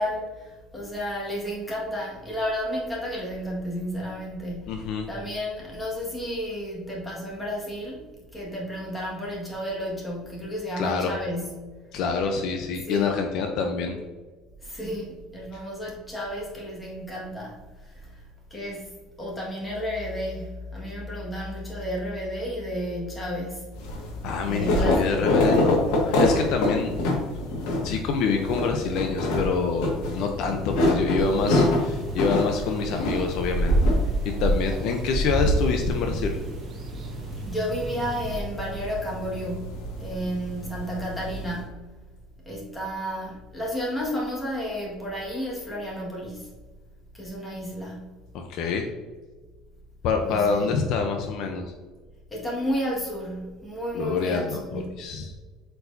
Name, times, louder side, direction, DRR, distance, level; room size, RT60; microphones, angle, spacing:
voice 1, 0.0-11.9 12.9-13.1 14.6-18.2 18.5-18.9 19.2-23.8 24.5-25.3 31.3-31.6 37.3-41.9 42.5-46.5 47.1-48.1 50.2-50.8 52.3-55.0, equal, 10° left, -4 dB, 1.6 m, -32 dB
voice 2, 4.7-5.1 10.8-11.1 11.9-14.0 15.5-15.6 24.2-26.9 27.8-33.9 34.2-36.4 48.3-48.9 50.0-51.7 53.9-55.3, left 5 dB, 55° left, 4 dB, 0.6 m, -26 dB
sound 1, 23.7-41.6, left 2 dB, 75° left, 1.7 m, -27 dB
sound 2, 31.2-38.4, right 1 dB, 25° right, 0.4 m, -28 dB
8.0 x 4.6 x 2.6 m, 1.4 s
cardioid pair, 175°, 0 cm